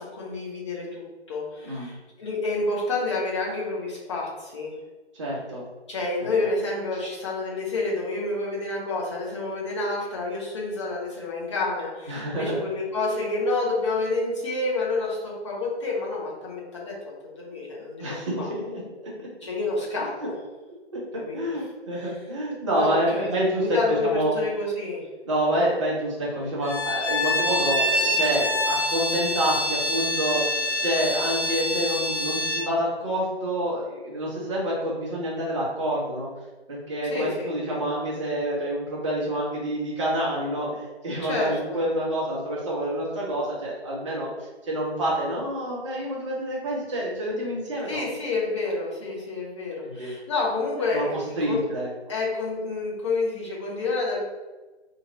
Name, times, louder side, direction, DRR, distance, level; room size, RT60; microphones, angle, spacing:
voice 1, 0.0-4.7 5.9-16.9 17.4-18.5 19.4-20.3 21.1-21.4 22.7-25.0 37.0-37.8 41.3-41.8 47.9-51.1 51.4-51.6 52.1-54.2, left 3 dB, 25° left, -3 dB, 0.9 m, -29 dB
voice 2, 5.1-5.6 6.2-6.3 12.1-12.6 18.0-18.8 20.0-20.3 20.9-21.0 21.3-24.3 25.3-30.4 30.8-36.3 36.7-44.3 44.6-48.0 49.8-50.1 50.9-51.9, right 1 dB, 25° right, -5 dB, 0.9 m, -27 dB
Bowed string instrument, 26.6-32.7, left 1 dB, 85° left, 0.9 m, -26 dB
2.8 x 2.8 x 3.9 m, 1.2 s
figure-of-eight pair, 140°, 33 cm